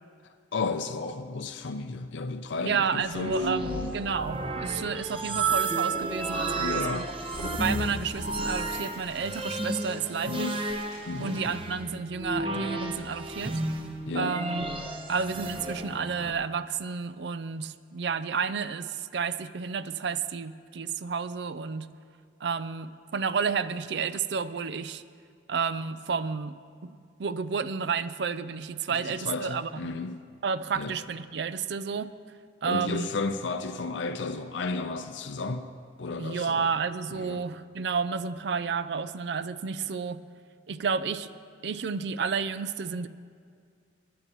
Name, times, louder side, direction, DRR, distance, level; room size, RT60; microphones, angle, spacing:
voice 1, 0.5-3.4 3.6-3.9 6.6-7.1 10.2-10.6 11.1-11.4 14.1-14.4 28.9-30.2 30.7-30.9 32.6-35.7 36.0-36.7 37.1-37.4, left 3 dB, 80° left, 0.5 m, -33 dB
voice 2, 2.6-7.0 7.4-10.5 11.2-13.6 14.1-14.6 15.1-21.9 22.4-25.0 25.5-29.9 30.4-32.1 32.6-33.1 36.1-40.2 40.7-41.3 41.6-43.1, right 5 dB, 65° right, 0.4 m, -31 dB
sound 1, 3.0-16.3, right 3 dB, 30° right, 0.8 m, -32 dB
Wind, 5.5-11.5, right 1 dB, 45° right, 2.2 m, -46 dB
21.0 x 11.0 x 3.0 m
head